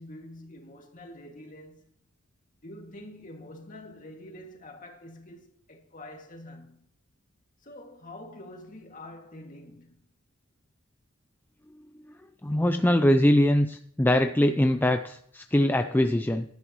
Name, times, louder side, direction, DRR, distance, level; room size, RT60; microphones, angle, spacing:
voice 1, 0.0-1.8 2.6-6.8 7.6-10.0, left 1 dB, 40° left, 2.2 m, -46 dB
voice 2, 12.4-16.4, left 1 dB, 10° left, 0.5 m, -22 dB
16.0 x 11.5 x 3.1 m
head